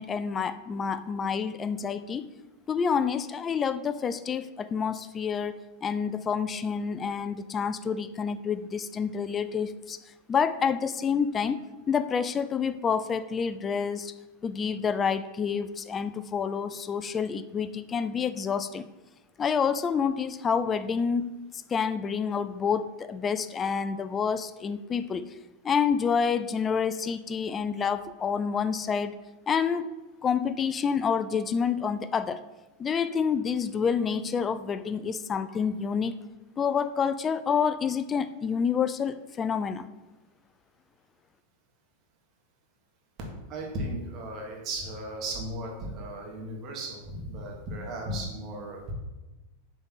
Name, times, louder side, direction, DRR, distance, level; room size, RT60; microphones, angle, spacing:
voice 1, 0.0-2.3 2.7-5.6 5.8-10.0 10.3-11.6 11.9-14.1 14.4-18.9 19.4-21.3 21.7-25.3 25.6-29.1 29.5-29.9 30.2-32.4 32.8-36.1 36.6-39.9, left 6 dB, 20° left, 13 dB, 0.3 m, -28 dB
voice 2, 43.3-48.9, right 1 dB, 35° right, -1 dB, 1.5 m, -36 dB
6.8 x 3.5 x 4.1 m, 1.1 s
figure-of-eight pair, 90°, 0 cm